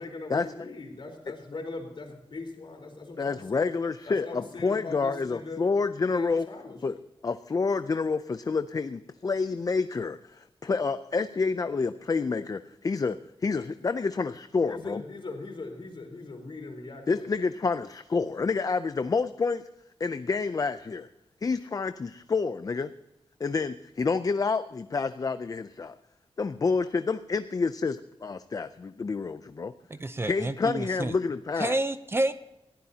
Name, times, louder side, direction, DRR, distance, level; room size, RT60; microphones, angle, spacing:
voice 1, 0.0-3.7 4.0-5.6 6.1-6.8 14.7-17.3, left 3 dB, 55° left, 2 dB, 3.9 m, -40 dB
voice 2, 3.2-6.5 6.8-7.0 7.2-15.0 17.1-19.6 20.0-21.1 21.4-22.9 23.4-26.0 26.4-29.7 30.3-31.8, left 4 dB, 35° left, 11 dB, 0.5 m, -28 dB
voice 3, 29.9-31.2 31.6-32.3, right 2 dB, 25° right, 11 dB, 0.6 m, -29 dB
21.0 x 15.0 x 2.8 m, 0.91 s
wide cardioid pair, 125°, 10 cm